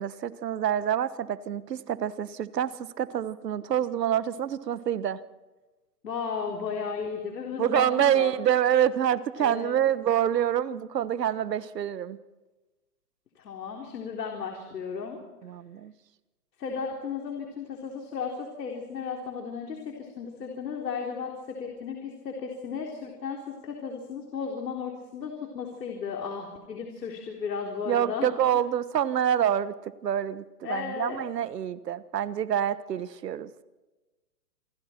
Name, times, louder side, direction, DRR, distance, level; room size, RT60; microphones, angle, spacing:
voice 1, 0.0-5.2 7.6-12.2 15.4-15.9 27.9-29.7 30.0-33.6, right 10 dB, 80° right, 15 dB, 1.4 m, -27 dB
voice 2, 6.0-8.3 9.4-9.8 13.4-15.2 16.6-28.3 30.6-31.2, left 6 dB, 80° left, 1 dB, 3.9 m, -35 dB
28.0 x 23.0 x 4.5 m, 1.2 s
hypercardioid pair, 170°, 48 cm